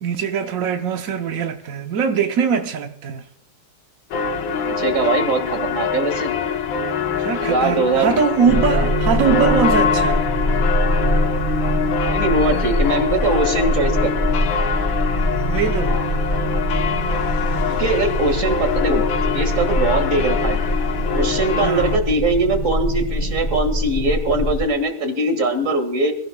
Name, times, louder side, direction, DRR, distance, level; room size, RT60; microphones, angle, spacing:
voice 1, 0.0-3.2 7.1-10.3 15.5-16.0 21.5-22.0, right 6 dB, 65° right, 0.9 m, -22 dB
sound 1, 4.1-22.0, left 6 dB, 65° left, 1.6 m, -24 dB
voice 2, 4.4-6.3 7.4-8.1 12.1-14.3 17.7-19.0 19.3-20.6 21.1-26.1, right 2 dB, 40° right, 2.0 m, -21 dB
sound 2, 8.5-24.6, equal, 20° left, 4.0 m, -23 dB
23.0 x 14.5 x 2.3 m
omnidirectional pair, 2.3 m